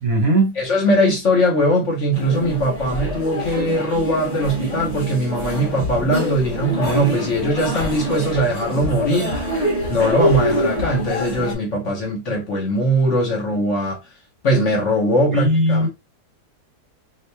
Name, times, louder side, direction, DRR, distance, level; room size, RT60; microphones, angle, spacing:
voice 1, 0.0-0.6 15.2-15.9, right 1 dB, 60° right, 1.7 m, -18 dB
voice 2, 0.6-9.4 9.9-14.0 14.4-15.9, equal, 50° left, 1.1 m, -20 dB
sound 1, 2.1-11.5, equal, 30° left, 0.8 m, -25 dB
2.8 x 2.8 x 3.3 m
omnidirectional pair, 1.8 m